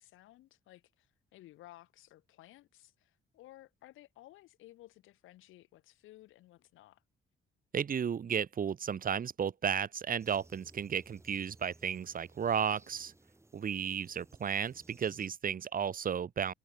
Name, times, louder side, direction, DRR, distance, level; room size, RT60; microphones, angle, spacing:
voice 1, 0.0-7.0, left 16 dB, 90° left, 4.3 m, -57 dB
voice 2, 7.7-13.1 13.5-16.5, right 7 dB, 45° right, 1.4 m, -33 dB
sound 1, 10.2-15.3, right 2 dB, 15° right, 6.1 m, -60 dB
cardioid pair, 90°, 20 cm